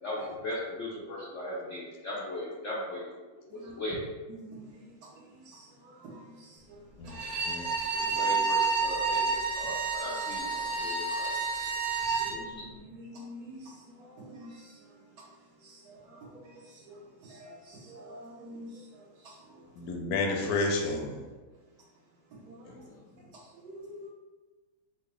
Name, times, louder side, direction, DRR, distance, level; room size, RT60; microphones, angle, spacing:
voice 1, 0.0-3.1 3.5-4.0 7.5-7.7 7.9-11.3 12.3-12.7, left 1 dB, 90° left, -6 dB, 0.6 m, -38 dB
voice 2, 4.3-4.7 5.4-6.5 8.0-8.2 11.1-11.2 12.2-13.7 14.0-14.7 15.6-16.6 16.9-17.0 17.2-18.7 19.2-19.3 22.3-22.6 23.6-24.1, equal, 65° right, -3 dB, 1.0 m, -47 dB
Bowed string instrument, 7.1-12.4, right 4 dB, 85° right, 1.5 m, -30 dB
voice 3, 19.8-21.2 22.6-23.2, left 3 dB, 70° left, 1 dB, 0.9 m, -31 dB
4.2 x 2.1 x 3.3 m, 1.2 s
omnidirectional pair, 2.1 m